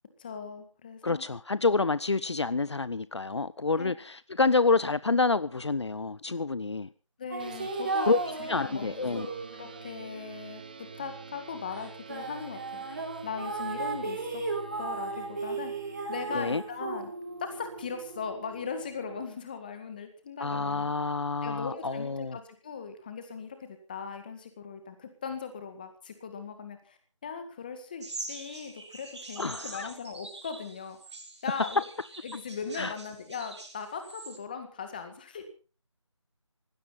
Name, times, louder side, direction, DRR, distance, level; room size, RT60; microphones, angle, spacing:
voice 1, 0.2-1.2 3.8-3.9 7.2-9.3 9.5-14.4 14.8-15.7 16.1-17.1 17.4-20.9 21.4-31.0 31.4-31.8 32.2-35.4, left 5 dB, 15° left, 7 dB, 1.9 m, -39 dB
voice 2, 1.0-6.9 8.1-8.2 8.5-9.3 16.3-16.6 20.4-22.4 29.4-29.9 32.8-32.9, left 3 dB, 60° left, 18 dB, 0.7 m, -28 dB
sound 1, 7.3-11.3 11.8-18.3, right 3 dB, 35° right, 4.1 m, -36 dB
sound 2, 7.4-19.3, right 5 dB, 15° right, 0.8 m, -47 dB
sound 3, 28.0-34.4, right 3 dB, 60° right, 4.9 m, -44 dB
19.0 x 16.0 x 4.1 m, 0.37 s
figure-of-eight pair, 170°, 17 cm